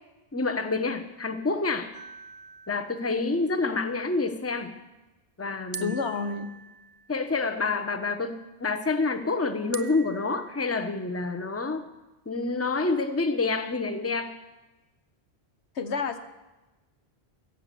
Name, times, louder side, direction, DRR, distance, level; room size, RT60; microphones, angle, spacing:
voice 1, 0.3-1.9 2.7-4.7 5.4-5.9 7.1-11.8 12.3-14.3, left 3 dB, 15° left, 8 dB, 0.8 m, -28 dB
sound 1, 1.9-3.4 5.7-7.4 9.7-10.8, right 5 dB, 35° right, 0.3 m, -44 dB
voice 2, 5.8-6.5 15.7-16.2, left 5 dB, 90° left, 8 dB, 1.4 m, -29 dB
15.5 x 8.2 x 7.6 m, 1.1 s
omnidirectional pair, 1.1 m